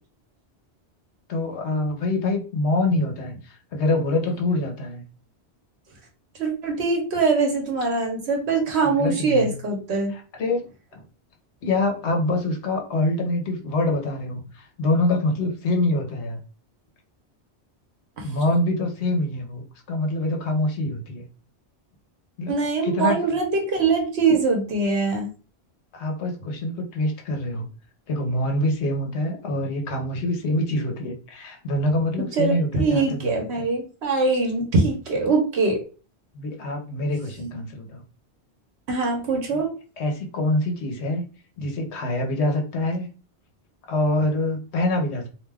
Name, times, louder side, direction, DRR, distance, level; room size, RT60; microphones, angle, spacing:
voice 1, 1.3-5.0 8.8-9.6 10.1-10.6 10.9-11.0 11.6-16.4 18.2-21.3 22.4-22.5 22.8-23.4 25.9-27.7 28.1-33.6 36.3-38.0 39.5-39.6 40.0-41.2 41.6-43.1 43.9-45.3, left 1 dB, 85° left, 3 dB, 1.0 m, -25 dB
voice 2, 6.4-10.1 18.2-18.3 22.5-25.3 32.3-35.8 38.9-39.7, right 3 dB, 80° right, 1 dB, 1.1 m, -23 dB
2.7 x 2.2 x 3.3 m, 0.35 s
omnidirectional pair, 1.1 m